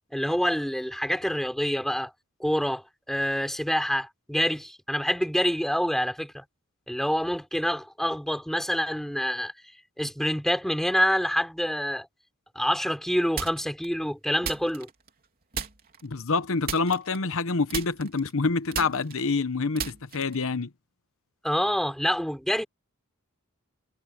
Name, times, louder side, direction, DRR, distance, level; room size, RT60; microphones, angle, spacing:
voice 1, 0.1-2.1 2.4-6.4 6.9-9.5 10.0-12.1 12.5-14.9 21.4-22.6, equal, ahead, 4.6 m, -27 dB
sound 1, 13.4-13.9 14.4-15.2 15.5-16.0 16.6-17.4 17.7-20.5, right 6 dB, 45° right, 3.3 m, -35 dB
voice 2, 16.0-20.7, left 4 dB, 65° left, 1.0 m, -27 dB
head